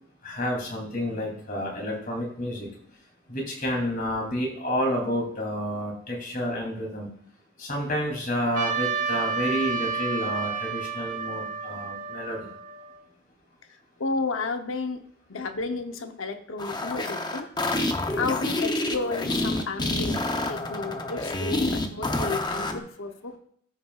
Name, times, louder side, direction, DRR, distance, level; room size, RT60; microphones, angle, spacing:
voice 1, 0.2-2.7 3.3-7.1 7.6-12.5, equal, 45° left, -1 dB, 3.1 m, -30 dB
Trumpet, 8.5-13.0, right 5 dB, 40° right, 1.1 m, -30 dB
voice 2, 13.7-17.5 18.1-23.4, left 3 dB, 75° left, 6 dB, 0.9 m, -32 dB
sound 1, 16.6-22.8, left 2 dB, 20° left, 0.7 m, -28 dB
14.0 x 5.9 x 2.4 m, 0.63 s
head